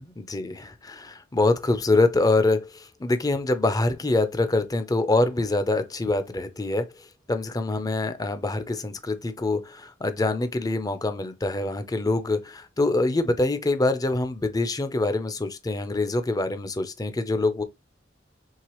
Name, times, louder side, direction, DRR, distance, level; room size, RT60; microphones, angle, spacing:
voice 1, 0.2-17.6, left 2 dB, 20° left, 0.5 m, -25 dB
4.7 x 3.3 x 3.0 m
head